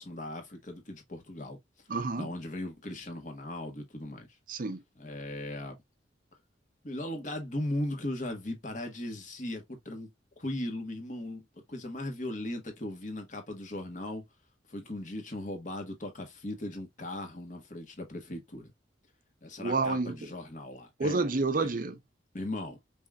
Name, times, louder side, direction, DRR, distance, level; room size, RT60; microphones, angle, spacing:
voice 1, 0.0-1.6 2.1-4.3 5.0-5.7 6.8-10.1 10.4-14.2 14.7-18.7 19.4-21.2 21.6-21.7 22.3-22.8, left 1 dB, 45° left, 1.5 m, -38 dB
voice 2, 1.9-2.3 4.5-4.8 19.6-20.3 21.0-22.0, right 3 dB, 50° right, 0.6 m, -29 dB
5.2 x 3.7 x 2.4 m
head